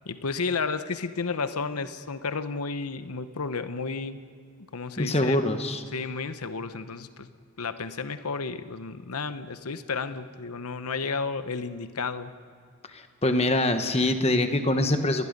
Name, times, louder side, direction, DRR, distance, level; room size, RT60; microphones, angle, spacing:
voice 1, 0.1-4.2 4.7-5.4 5.9-7.3 7.6-12.3, left 4 dB, 85° left, 11 dB, 0.9 m, -32 dB
voice 2, 5.0-5.8 12.9-15.3, left 1 dB, 25° left, 7 dB, 1.3 m, -24 dB
29.0 x 19.5 x 5.3 m, 2.1 s
head